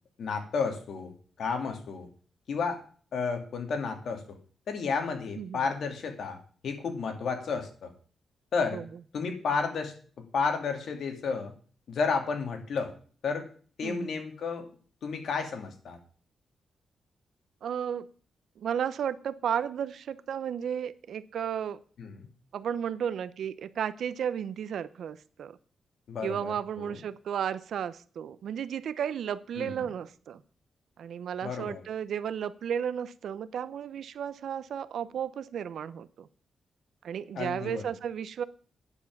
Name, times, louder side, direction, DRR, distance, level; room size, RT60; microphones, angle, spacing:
voice 1, 0.2-1.1 1.4-2.1 2.5-2.8 3.1-4.4 4.7-6.4 6.6-7.9 8.5-8.8 9.1-9.9 10.3-11.5 11.9-12.9 13.2-13.5 13.8-14.7 15.0-16.0 22.0-22.2 26.1-27.0 29.6-29.9 31.4-31.8 37.3-37.8, left 5 dB, 70° left, 5 dB, 2.4 m, -32 dB
voice 2, 13.8-14.2 17.6-18.1 18.6-21.8 22.5-25.6 26.2-30.4 31.0-36.3 37.0-38.4, right 8 dB, 80° right, 16 dB, 0.7 m, -33 dB
9.8 x 7.2 x 7.0 m, 0.43 s
cardioid pair, 115°, 0 cm